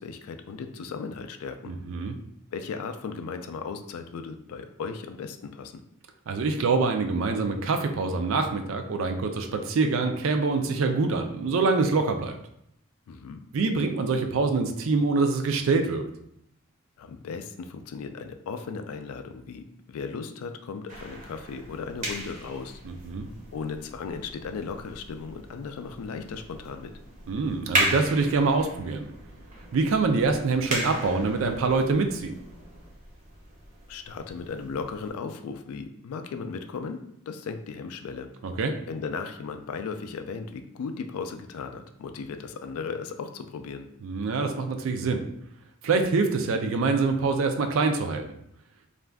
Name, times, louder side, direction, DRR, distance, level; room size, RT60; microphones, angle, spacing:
voice 1, 0.0-1.7 2.5-5.7 13.1-13.4 17.0-22.8 23.5-26.9 33.9-37.0 37.3-38.3 38.9-43.9, left 5 dB, 80° left, 7 dB, 0.3 m, -36 dB
voice 2, 1.7-2.1 6.3-12.4 13.5-16.0 22.8-23.3 27.3-29.1 29.7-32.4 38.4-38.7 44.0-45.2 45.8-48.3, right 4 dB, 65° right, 5 dB, 0.3 m, -25 dB
sound 1, 20.9-35.1, right 1 dB, 35° right, 0.6 m, -36 dB
2.5 x 2.2 x 3.3 m, 0.76 s
head